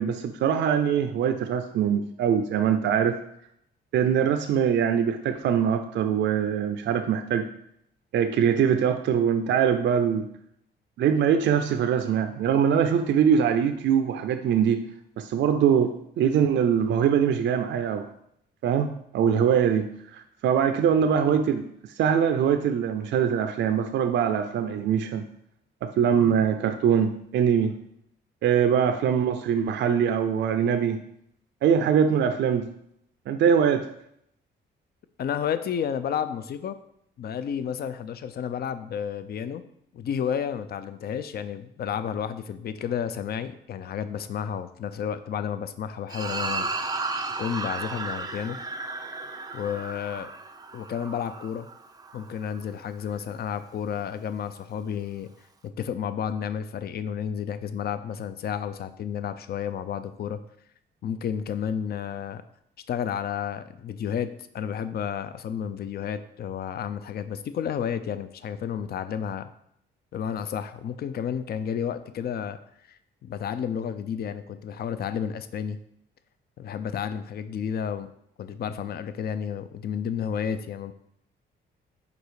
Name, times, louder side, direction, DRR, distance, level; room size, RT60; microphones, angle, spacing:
voice 1, 0.0-3.2 3.9-7.5 8.1-10.3 11.0-14.9 15.2-18.1 18.6-21.6 22.0-25.2 25.8-27.7 28.4-31.0 31.6-32.7 33.3-33.9, right 8 dB, 65° right, 7 dB, 0.5 m, -23 dB
voice 2, 35.2-36.8 37.2-39.6 39.9-46.7 47.4-48.6 49.5-50.3 50.7-51.7 52.1-55.3 55.6-60.4 61.0-62.4 62.9-64.3 64.5-69.5 70.1-72.6 73.2-75.8 76.6-78.1 78.4-80.9, left 8 dB, 50° left, 12 dB, 0.5 m, -31 dB
sound 1, 46.1-52.6, right 3 dB, 20° right, 0.5 m, -34 dB
5.2 x 4.1 x 4.8 m, 0.72 s
cardioid pair, 90°, 20 cm